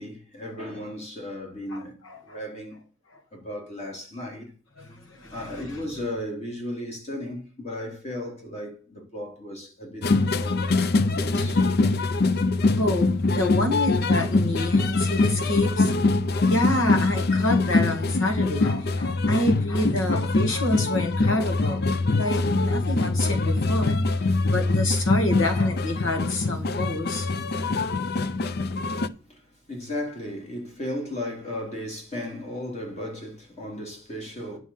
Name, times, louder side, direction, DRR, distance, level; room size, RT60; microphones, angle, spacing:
voice 1, 0.0-2.8 3.3-4.5 5.3-10.1 10.3-10.8 11.1-11.6 29.3-29.4 29.7-34.6, left 1 dB, 35° left, 3.0 m, -35 dB
voice 2, 1.7-2.4 4.8-5.8 10.9-11.6 12.7-15.9 16.4-24.0 24.5-27.6, left 1 dB, 80° left, 2.2 m, -28 dB
sound 1, 10.0-29.1, left 3 dB, 50° left, 0.5 m, -23 dB
9.9 x 6.1 x 5.6 m
head